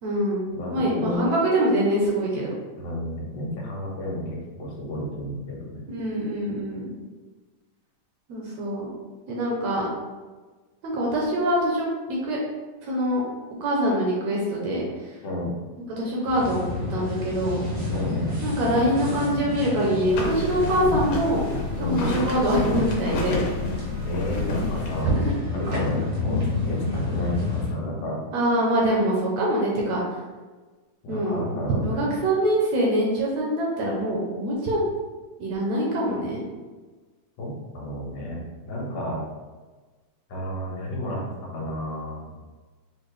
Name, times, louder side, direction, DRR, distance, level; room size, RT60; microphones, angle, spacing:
voice 1, 0.0-2.5 5.9-7.0 8.3-8.9 9.3-9.9 10.8-11.9 12.3-12.4 12.8-13.2 13.6-15.1 16.0-16.6 16.9-17.6 18.4-21.4 21.8-23.4 25.0-25.3 28.3-30.2 31.1-31.4 31.8-34.8 35.4-36.4, right 1 dB, 70° right, -4 dB, 1.8 m, -24 dB
voice 2, 0.5-1.3 2.8-5.9 15.2-15.6 17.9-18.4 21.8-22.0 24.0-25.2 25.5-28.2 31.0-32.0 37.4-38.4 38.7-39.2 40.3-41.2 41.5-42.3, left 1 dB, 70° left, -3 dB, 2.3 m, -31 dB
sound 1, 16.2-27.7, left 2 dB, 45° right, 0.9 m, -30 dB
sound 2, 20.1-25.0, left 3 dB, 85° left, 2.3 m, -30 dB
6.4 x 2.2 x 3.3 m, 1.3 s
omnidirectional pair, 3.6 m